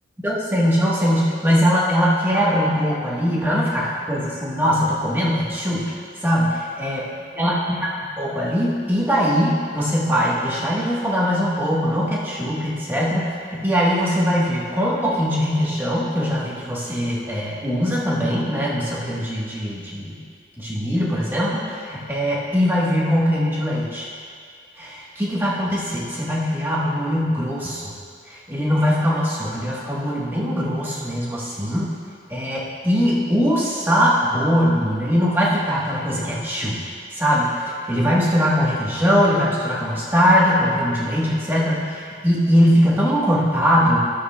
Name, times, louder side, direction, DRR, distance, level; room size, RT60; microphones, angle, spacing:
voice 1, 0.2-5.9 6.2-7.1 7.4-7.5 8.2-13.3 13.5-20.2 20.6-24.1 24.8-27.9 28.3-31.9 32.3-36.8 37.1-44.0, equal, 10° right, -6 dB, 1.3 m, -21 dB
13.0 x 7.8 x 2.3 m, 2.2 s
head